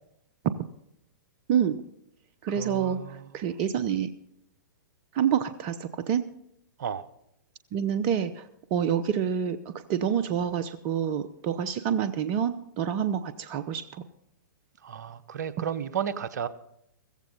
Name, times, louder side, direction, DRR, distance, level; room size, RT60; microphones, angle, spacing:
voice 1, 1.5-1.8 2.4-3.0 3.3-4.1 5.1-6.3 7.7-14.0, right 8 dB, 35° right, 13 dB, 0.8 m, -27 dB
voice 2, 2.5-3.4 6.8-7.1 14.8-16.5, right 8 dB, 60° right, 14 dB, 1.0 m, -33 dB
15.5 x 15.0 x 4.0 m, 0.76 s
figure-of-eight pair, 115°, 10 cm